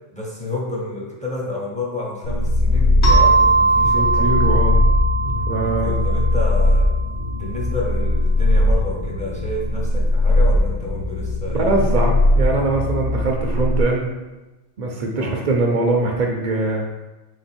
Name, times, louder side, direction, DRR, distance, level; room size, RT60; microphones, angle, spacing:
voice 1, 0.1-4.3 5.6-6.9 7.3-11.7 15.1-15.4, left 2 dB, 10° left, -4 dB, 0.5 m, -30 dB
sound 1, 2.2-13.8, left 1 dB, 75° left, 0.9 m, -19 dB
sound 2, 3.0-7.4, right 4 dB, 60° left, 1.3 m, -20 dB
voice 2, 3.8-4.8 5.2-6.0 11.5-14.1 14.8-16.8, right 2 dB, 60° right, 0 dB, 0.4 m, -22 dB
3.5 x 2.9 x 4.2 m, 1.1 s
omnidirectional pair, 1.3 m